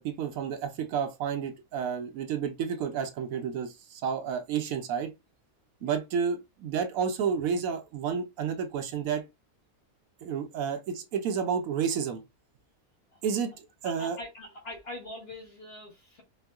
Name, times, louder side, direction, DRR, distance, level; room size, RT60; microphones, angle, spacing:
voice 1, 0.0-5.1 5.8-9.2 10.2-12.2 13.2-13.5 13.8-14.2, right 7 dB, 75° right, 1.0 m, -30 dB
voice 2, 13.8-16.2, left 1 dB, 50° left, 1.0 m, -42 dB
4.3 x 2.0 x 2.2 m
omnidirectional pair, 1.6 m